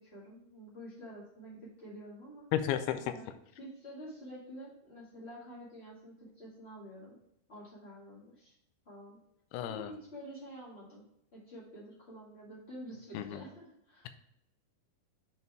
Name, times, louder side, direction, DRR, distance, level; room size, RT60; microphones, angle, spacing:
voice 1, 0.0-2.5 3.0-3.3 3.6-7.2 7.5-8.6 8.8-9.2 9.6-11.0 11.3-14.1, equal, 55° left, -7 dB, 0.7 m, -49 dB
voice 2, 2.5-3.1 9.5-9.9 13.1-13.4, left 10 dB, 85° left, 9 dB, 2.6 m, -33 dB
7.4 x 4.0 x 4.5 m, 0.78 s
omnidirectional pair, 4.6 m